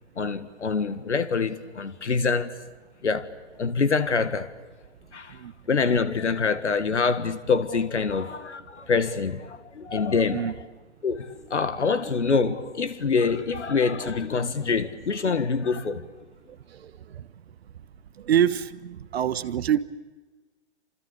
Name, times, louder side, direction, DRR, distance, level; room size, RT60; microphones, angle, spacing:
voice 1, 0.2-2.5 3.0-3.3 3.6-4.5 5.1-5.4 5.7-10.5 11.0-16.0, left 5 dB, 80° left, 1.8 m, -25 dB
voice 2, 18.2-19.8, right 9 dB, 60° right, 1.3 m, -25 dB
29.5 x 27.0 x 6.9 m
figure-of-eight pair, 120°, 35 cm